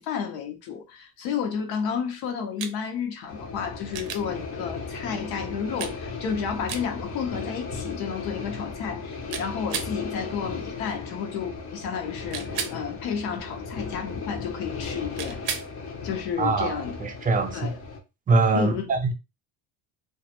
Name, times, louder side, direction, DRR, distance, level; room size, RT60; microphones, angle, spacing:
voice 1, 0.0-15.4 16.0-17.0 17.5-17.8 18.5-18.9, left 7 dB, 70° left, 0.7 m, -31 dB
sound 1, 2.6-2.8 3.9-4.2 5.8-6.0 6.7-6.9 9.3-9.9 12.3-12.8 15.2-15.7 18.0-18.1, right 7 dB, 70° right, 0.5 m, -33 dB
sound 2, 3.3-18.0, left 4 dB, 35° left, 0.6 m, -36 dB
voice 2, 16.4-17.7 18.3-19.1, right 3 dB, 20° right, 0.4 m, -23 dB
2.2 x 2.0 x 2.8 m
supercardioid pair, 105°, 39 cm